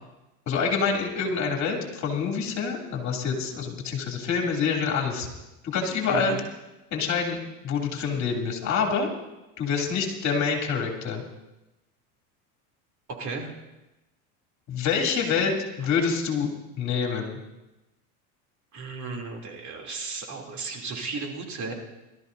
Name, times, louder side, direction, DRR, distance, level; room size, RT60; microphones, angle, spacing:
voice 1, 0.5-5.3 5.6-6.4 6.9-9.1 9.6-11.2 14.7-16.5 16.8-17.4, left 5 dB, 40° left, 1 dB, 3.1 m, -26 dB
voice 2, 13.1-13.5 18.7-21.7, right 4 dB, 40° right, 1 dB, 3.2 m, -34 dB
23.5 x 13.0 x 2.7 m, 0.99 s
hypercardioid pair, 95°, 43 cm